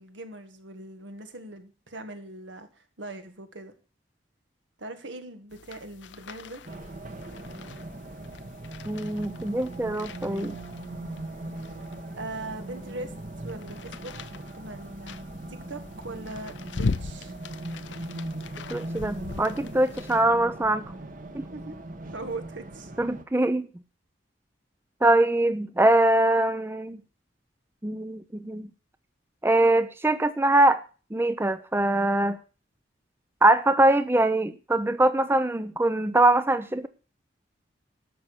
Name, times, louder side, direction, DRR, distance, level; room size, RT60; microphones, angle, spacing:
voice 1, 0.0-3.8 4.8-6.6 12.2-13.1 13.4-14.1 14.6-15.2 15.5-17.3 21.4-21.8 22.1-22.9, right 2 dB, 80° right, 8 dB, 1.8 m, -40 dB
sound 1, 5.5-20.2, left 4 dB, 70° left, 0.6 m, -40 dB
Race car auto racing, 6.6-23.2, right 2 dB, 45° right, 1.3 m, -39 dB
voice 2, 8.9-10.6 18.7-20.9 21.3-21.4 23.0-23.7 25.0-27.0 27.8-28.7 29.4-30.8 31.1-32.4 33.4-36.9, right 1 dB, 15° right, 12 dB, 0.5 m, -23 dB
12.5 x 6.0 x 6.6 m, 0.35 s
head